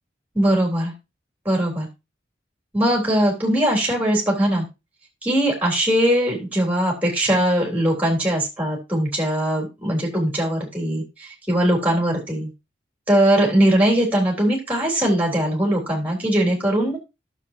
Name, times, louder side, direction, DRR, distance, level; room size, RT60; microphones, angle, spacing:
voice 1, 0.3-0.9 1.4-1.9 2.7-4.6 5.2-12.5 13.1-17.0, right 1 dB, 10° right, -1 dB, 3.4 m, -20 dB
12.0 x 7.0 x 2.8 m, 0.25 s
head